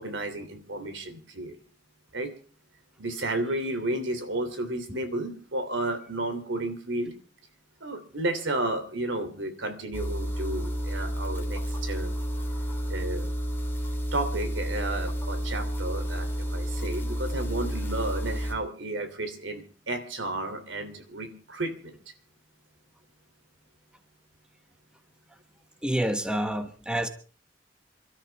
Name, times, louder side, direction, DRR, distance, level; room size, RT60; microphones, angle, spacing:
voice 1, 0.0-1.5 2.1-2.3 3.0-7.1 7.8-12.1 12.9-13.3 14.1-22.0, right 2 dB, 80° right, 8 dB, 3.0 m, -32 dB
sound 1, 9.9-18.5, equal, 10° left, 3.4 m, -31 dB
voice 2, 25.8-27.1, right 1 dB, 5° right, 7 dB, 1.3 m, -28 dB
28.0 x 13.0 x 3.5 m, 0.39 s
head